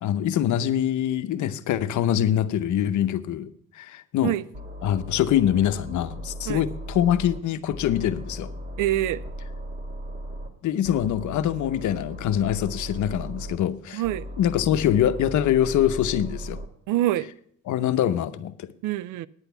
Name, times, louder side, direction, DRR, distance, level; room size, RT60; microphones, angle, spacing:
voice 1, 0.0-4.3 4.8-8.5 10.6-14.0 14.4-16.6 17.7-18.7, left 10 dB, 75° left, 0.8 m, -24 dB
sound 1, 4.5-7.4 7.7-10.5 10.8-13.6 14.0-16.7, equal, 40° right, 2.3 m, -37 dB
voice 2, 8.8-9.2 13.9-14.3 16.9-17.3 18.8-19.3, right 14 dB, 85° right, 0.5 m, -25 dB
9.8 x 8.2 x 6.8 m
cardioid pair, 90°, 30 cm